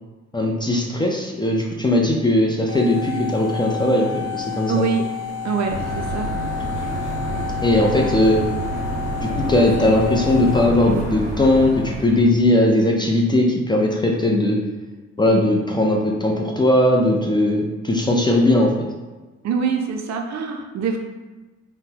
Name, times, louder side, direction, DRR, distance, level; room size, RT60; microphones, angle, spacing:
voice 1, 0.3-4.8 7.6-8.4 9.2-14.6 15.2-18.7, left 1 dB, 15° left, 0 dB, 0.4 m, -18 dB
sound 1, 2.7-10.7, left 8 dB, 20° right, 1.0 m, -30 dB
voice 2, 4.7-5.0 5.4-6.3 19.4-21.0, right 5 dB, 60° right, 3 dB, 0.5 m, -24 dB
sound 2, 5.7-12.2, right 2 dB, 45° right, 1.2 m, -28 dB
3.7 x 2.1 x 2.8 m, 1.2 s
cardioid pair, 90°, 30 cm